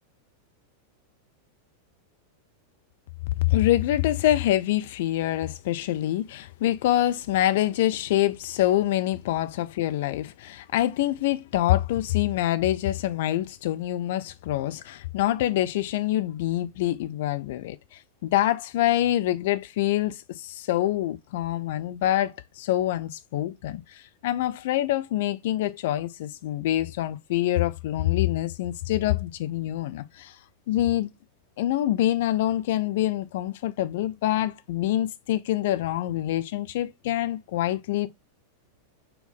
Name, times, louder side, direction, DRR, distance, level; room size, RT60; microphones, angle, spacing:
voice 1, 3.4-17.8 18.2-30.3 30.7-31.1 31.6-38.1, left 14 dB, 55° left, 0.4 m, -25 dB
4.4 x 2.7 x 3.6 m
figure-of-eight pair, 90°, 0 cm